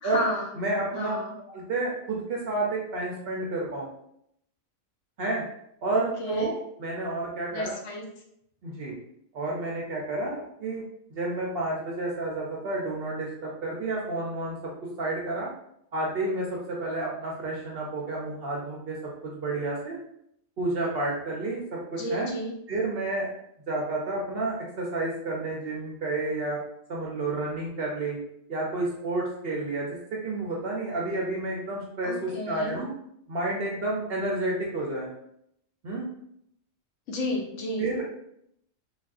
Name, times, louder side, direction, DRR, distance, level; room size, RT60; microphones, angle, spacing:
voice 1, 0.0-0.5 0.9-1.3 5.9-6.5 7.5-8.0 22.0-22.5 32.0-32.8 37.1-37.8, left 1 dB, 70° left, 1 dB, 0.9 m, -32 dB
voice 2, 0.6-1.2 1.5-3.9 5.2-5.4 5.8-6.5 6.8-7.7 8.6-8.9 9.3-10.8 11.1-15.5 15.9-19.0 19.2-20.0 20.6-22.3 22.7-23.3 23.7-26.6 26.9-28.2 28.5-32.9 33.3-35.1 35.8-36.0 37.8-38.1, right 2 dB, 60° right, -3 dB, 0.6 m, -30 dB
3.4 x 2.4 x 2.4 m, 0.74 s
omnidirectional pair, 1.4 m